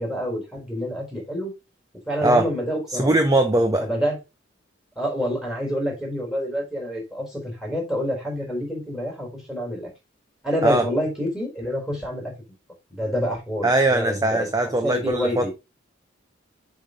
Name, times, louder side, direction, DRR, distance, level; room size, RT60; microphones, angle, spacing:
voice 1, 0.0-1.5 2.1-3.1 3.8-4.2 5.0-9.9 10.4-12.3 12.9-14.5 14.8-15.5, equal, ahead, 3.8 m, -27 dB
voice 2, 2.9-3.9 10.6-10.9 13.6-15.5, right 2 dB, 20° right, 0.7 m, -20 dB
7.2 x 3.8 x 5.0 m
head